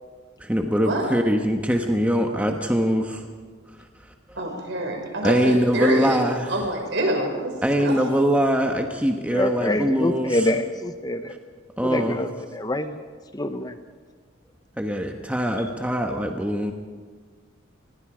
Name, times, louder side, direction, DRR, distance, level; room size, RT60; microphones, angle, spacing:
voice 1, 0.4-3.2 5.2-6.6 7.6-10.4 11.8-12.2 14.8-16.7, equal, 5° right, 3 dB, 1.1 m, -22 dB
voice 2, 4.3-6.2 6.5-7.5 7.8-8.0, right 1 dB, 65° right, 1 dB, 5.8 m, -26 dB
voice 3, 9.3-11.3 11.8-13.0 13.3-13.7, left 1 dB, 20° left, 9 dB, 0.8 m, -26 dB
28.0 x 21.0 x 5.0 m, 1.5 s
head